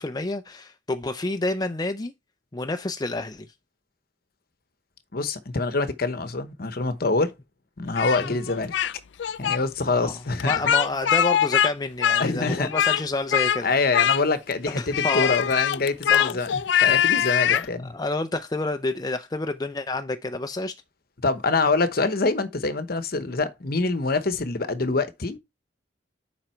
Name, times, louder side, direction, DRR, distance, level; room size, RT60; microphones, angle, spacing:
voice 1, 0.0-2.1 2.5-3.5 8.2-8.4 9.9-10.2 10.4-13.7 14.7-15.4 16.1-16.4 16.9-17.0 17.5-20.7, left 2 dB, 20° left, 0.5 m, -29 dB
voice 2, 5.1-7.3 7.8-8.7 9.4-10.5 12.2-12.7 13.6-17.9 21.2-25.4, left 3 dB, 55° left, 1.0 m, -25 dB
Speech, 8.0-8.9 9.2-9.6 10.4-11.7 12.0-13.0 13.3-13.6 13.9-14.5 14.9-17.7, left 9 dB, 70° left, 0.4 m, -22 dB
7.4 x 5.1 x 4.5 m
head